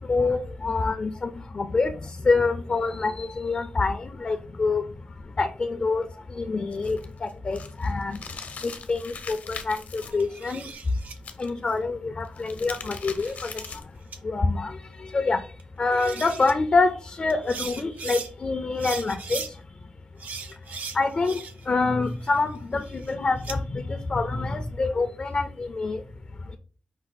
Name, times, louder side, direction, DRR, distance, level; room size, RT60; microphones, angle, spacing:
voice 1, 0.1-1.9 2.2-4.8 5.4-6.1 6.4-8.2 8.6-10.6 11.4-13.5 14.2-14.8 15.0-15.4 15.8-19.4 20.9-21.4 21.7-26.0, left 3 dB, 40° left, 6 dB, 0.5 m, -26 dB
sound 1, 6.7-10.1 11.2-11.7 12.2-14.0, left 5 dB, 70° left, 0.8 m, -40 dB
sound 2, 10.1-11.2 12.7-13.8 14.1-14.2 15.6-15.7 15.9-16.5 17.3-18.3 18.8-19.5 20.2-21.7 22.1-23.6, right 5 dB, 80° right, 0.7 m, -38 dB
5.4 x 2.4 x 4.1 m, 0.38 s
wide cardioid pair, 115°, 3 cm